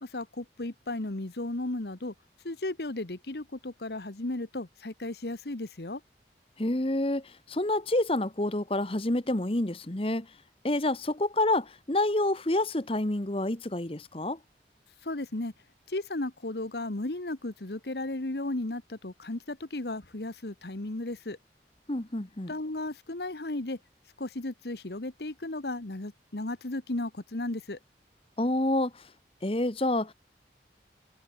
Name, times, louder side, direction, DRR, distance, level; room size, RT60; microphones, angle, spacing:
voice 1, 0.0-2.1 2.4-6.0 15.0-15.5 15.9-21.4 22.5-23.8 24.2-27.8, left 2 dB, 65° left, 1.4 m, -35 dB
voice 2, 6.6-10.3 10.6-14.4 21.9-22.5 28.4-29.1 29.4-30.1, left 1 dB, 30° left, 1.3 m, -28 dB
head